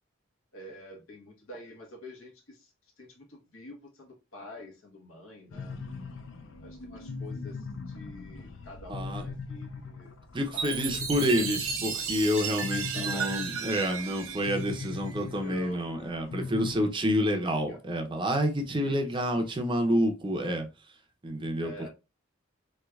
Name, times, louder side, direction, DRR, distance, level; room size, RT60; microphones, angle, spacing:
voice 1, 0.5-5.8 6.6-10.1 10.5-11.8 12.9-14.1 15.4-15.9 17.7-17.8 18.7-19.4 21.6-21.9, left 1 dB, 85° left, 1.2 m, -47 dB
sound 1, 5.5-16.8, left 4 dB, 60° left, 0.4 m, -40 dB
voice 2, 8.9-9.2 10.3-20.7 21.2-21.7, equal, 25° right, 0.6 m, -28 dB
Chime, 10.6-15.3, right 6 dB, 85° right, 0.6 m, -34 dB
3.2 x 3.1 x 2.3 m
head